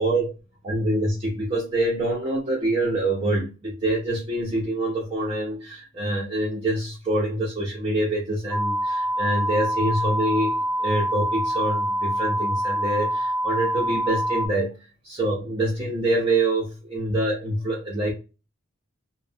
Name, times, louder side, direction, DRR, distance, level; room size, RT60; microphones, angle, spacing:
voice 1, 0.0-0.3 0.6-14.8 15.0-18.1, right 1 dB, 30° right, -5 dB, 0.6 m, -25 dB
sound 1, 8.5-14.5, right 1 dB, 10° left, 1.0 m, -25 dB
2.9 x 2.1 x 2.6 m, 0.30 s
head